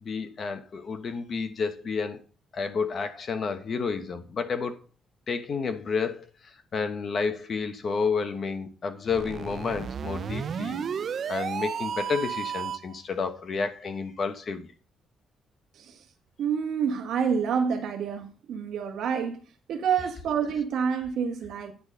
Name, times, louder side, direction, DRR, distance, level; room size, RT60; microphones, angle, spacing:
voice 1, 0.0-2.2 2.5-4.8 5.3-6.2 6.7-10.8 11.3-14.7, left 5 dB, 50° left, 1.2 m, -30 dB
sound 1, 9.0-13.0, right 7 dB, 55° right, 0.5 m, -33 dB
voice 2, 15.7-16.1 16.4-21.7, right 7 dB, 75° right, 1.2 m, -28 dB
9.7 x 4.1 x 6.4 m
cardioid pair, 90°, 0 cm